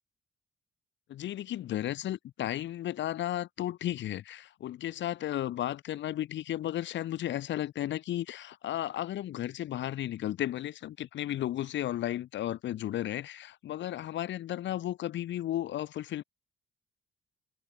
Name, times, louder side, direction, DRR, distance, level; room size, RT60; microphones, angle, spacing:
voice 1, 1.1-16.2, left 13 dB, 70° left, 0.8 m, -34 dB
cardioid pair, 90°, 20 cm